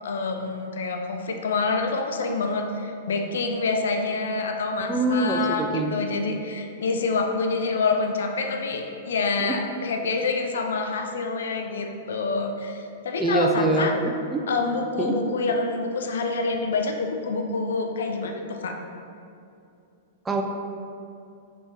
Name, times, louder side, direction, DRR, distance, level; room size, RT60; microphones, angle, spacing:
voice 1, 0.0-13.9 14.5-18.7, left 3 dB, 60° left, 4 dB, 0.4 m, -27 dB
voice 2, 4.8-5.9 9.4-9.6 13.2-14.4 15.0-15.1 20.2-20.4, right 2 dB, 15° right, 2 dB, 0.3 m, -24 dB
4.1 x 3.2 x 3.1 m, 2.5 s
figure-of-eight pair, 100°, 0 cm